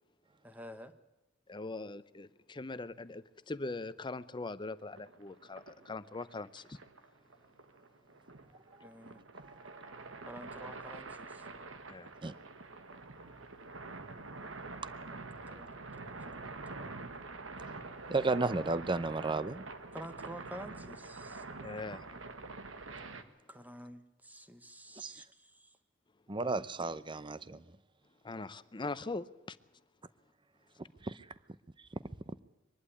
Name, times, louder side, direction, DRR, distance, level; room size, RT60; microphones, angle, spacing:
voice 1, 0.4-0.9 8.8-9.2 10.3-11.5 15.5-17.0 19.9-21.4 23.5-25.8, equal, 10° right, 1.2 m, -50 dB
voice 2, 1.5-6.8 11.9-12.1 21.6-22.1 28.2-29.6, left 3 dB, 25° left, 0.7 m, -41 dB
sound 1, 4.9-23.2, right 3 dB, 90° right, 1.5 m, -46 dB
voice 3, 9.4-10.3 12.2-12.3 16.2-16.3 18.1-19.6 25.0-25.1 26.3-27.6 31.0-31.2, right 3 dB, 25° right, 0.7 m, -34 dB
23.0 x 11.5 x 9.8 m
head